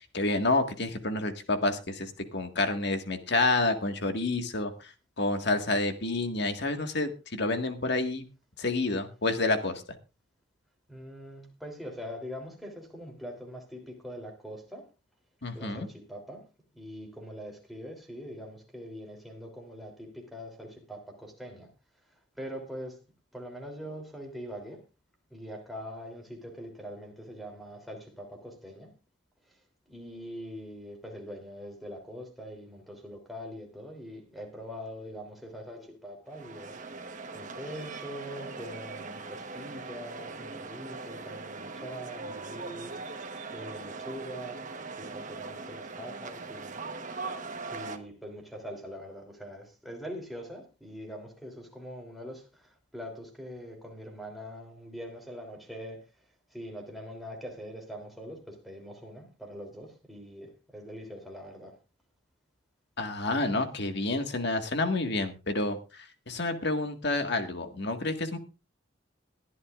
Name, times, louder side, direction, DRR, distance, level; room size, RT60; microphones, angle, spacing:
voice 1, 0.0-8.2 8.6-9.8 15.4-15.9 63.0-68.4, left 2 dB, 60° left, 1.8 m, -29 dB
voice 2, 10.9-14.8 15.5-16.5 16.7-21.7 21.9-23.0 23.3-24.8 25.3-28.9 29.4-36.8 37.3-43.2 43.5-44.7 45.0-46.8 47.6-61.7, equal, ahead, 3.2 m, -43 dB
sound 1, 36.3-48.0, right 3 dB, 40° right, 1.2 m, -40 dB
22.0 x 11.5 x 2.5 m
head